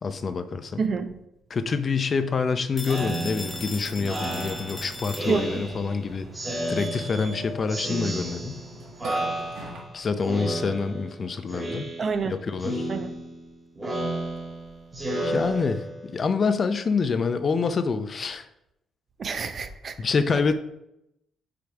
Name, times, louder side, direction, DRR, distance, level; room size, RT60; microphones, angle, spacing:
voice 1, 0.0-0.8 1.5-6.3 6.7-8.6 9.9-11.9 12.3-12.9 15.1-18.5 20.0-20.5, left 5 dB, 45° left, 10 dB, 0.5 m, -26 dB
voice 2, 0.8-1.2 5.3-5.6 12.0-12.4 12.9-13.1 19.2-20.0, right 5 dB, 45° right, 10 dB, 0.6 m, -28 dB
Telephone, 2.8-5.8, left 2 dB, 10° left, 0.8 m, -39 dB
Speech synthesizer, 2.8-6.0 6.3-7.4 7.7-8.7 9.0-9.9 10.3-11.2 11.5-12.3 12.6-16.1, right 1 dB, 25° right, 2.3 m, -32 dB
Burping eructation, 3.4-9.8, right 1 dB, 85° right, 1.3 m, -41 dB
5.2 x 4.7 x 4.6 m, 0.83 s
cardioid pair, 90°, 0 cm